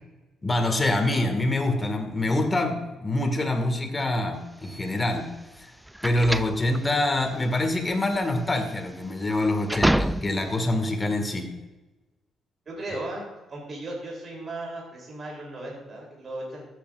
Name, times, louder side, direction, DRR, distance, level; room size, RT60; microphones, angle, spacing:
voice 1, 0.4-5.7 6.0-11.5, left 1 dB, 20° left, 4 dB, 1.8 m, -25 dB
sound 1, 4.6-10.6, right 1 dB, 5° right, 0.3 m, -29 dB
voice 2, 12.6-13.2 13.5-16.6, right 2 dB, 45° right, -2 dB, 3.2 m, -36 dB
14.0 x 8.3 x 2.5 m, 1.1 s
cardioid pair, 90°, 0 cm